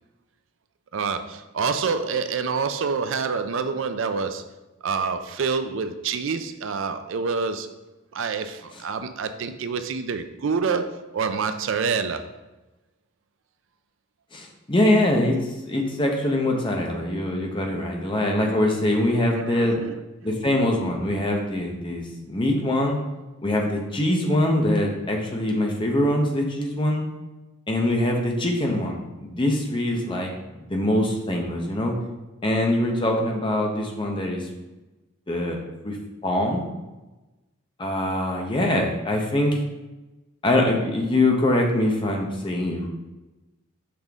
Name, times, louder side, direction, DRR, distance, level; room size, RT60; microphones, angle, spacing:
voice 1, 0.9-4.5 4.8-7.7 8.1-12.3 19.4-20.0 20.2-20.3, right 5 dB, 70° right, 9 dB, 0.4 m, -27 dB
voice 2, 14.3-15.4 15.6-19.8 20.2-23.0 23.4-27.0 27.7-30.3 30.6-31.9 32.4-34.5 35.3-36.0 36.2-36.6 37.8-39.5 40.4-42.9, left 1 dB, 25° left, 1 dB, 0.9 m, -23 dB
6.0 x 5.1 x 3.6 m, 1.1 s
head